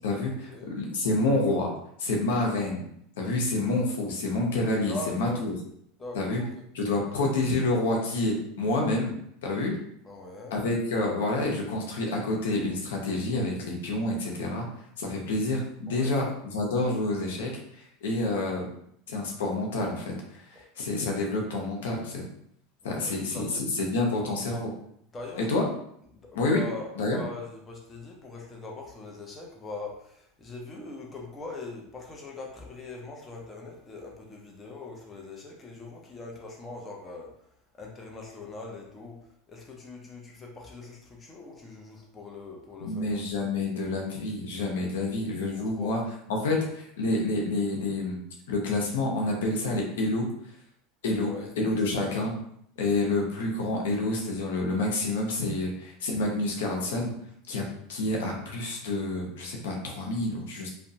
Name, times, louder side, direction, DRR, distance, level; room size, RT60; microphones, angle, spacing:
voice 1, 0.0-1.7 2.0-2.8 3.2-5.5 6.1-6.4 6.7-9.1 9.4-9.8 10.5-14.7 15.0-16.2 16.5-18.7 19.1-20.5 20.8-22.2 22.8-23.5 23.7-24.7 25.4-25.6 26.3-26.6 27.0-27.2 42.8-46.0 46.3-48.2 48.5-50.3 51.0-52.3 52.8-57.1 57.5-57.6 57.9-60.7, left 2 dB, 90° left, 0 dB, 0.6 m, -28 dB
voice 2, 4.9-5.4 6.0-6.6 10.0-10.5 15.9-16.3 22.8-23.6 25.1-25.5 26.2-37.3 37.8-39.2 39.5-43.5 45.7-46.0 51.1-51.5 51.8-52.2, left 3 dB, 20° left, -1 dB, 0.6 m, -42 dB
2.7 x 2.1 x 2.6 m, 0.70 s
supercardioid pair, 125°, 0 cm